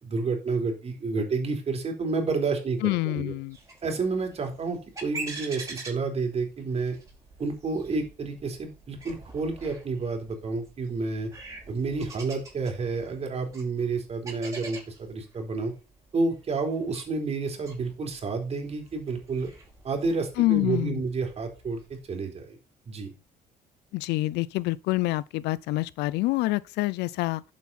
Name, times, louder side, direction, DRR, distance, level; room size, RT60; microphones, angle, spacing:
voice 1, 0.0-3.3 3.8-7.0 7.4-11.3 11.7-15.7 16.1-19.5 19.8-22.6 22.9-23.1, right 4 dB, 40° right, 3.9 m, -30 dB
voice 2, 2.8-3.6 20.4-21.0 23.9-27.4, left 19 dB, 90° left, 0.5 m, -26 dB
sound 1, 3.5-22.0, right 3 dB, 20° right, 5.1 m, -45 dB
11.5 x 7.4 x 4.2 m
cardioid pair, 110°, 17 cm